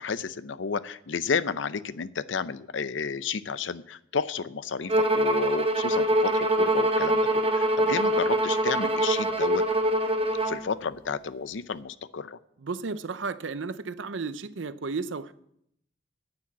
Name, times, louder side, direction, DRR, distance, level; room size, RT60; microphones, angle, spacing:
voice 1, 0.0-9.6 10.5-12.4, left 5 dB, 85° left, 15 dB, 0.6 m, -32 dB
Bowed string instrument, 4.9-10.6, right 1 dB, 30° right, 1.0 m, -24 dB
voice 2, 12.6-15.3, right 4 dB, 85° right, 14 dB, 0.6 m, -33 dB
9.9 x 8.8 x 7.3 m, 0.73 s
head